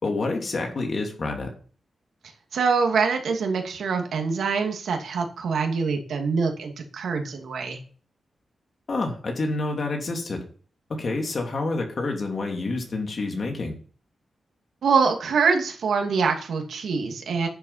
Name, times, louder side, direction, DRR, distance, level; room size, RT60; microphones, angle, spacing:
voice 1, 0.0-1.5 8.9-10.4 10.9-13.7, left 3 dB, 40° left, 2 dB, 3.0 m, -28 dB
voice 2, 2.5-7.8 14.8-17.5, right 5 dB, 90° right, 3 dB, 2.5 m, -24 dB
10.0 x 7.7 x 5.8 m, 0.43 s
wide cardioid pair, 155°, 0 cm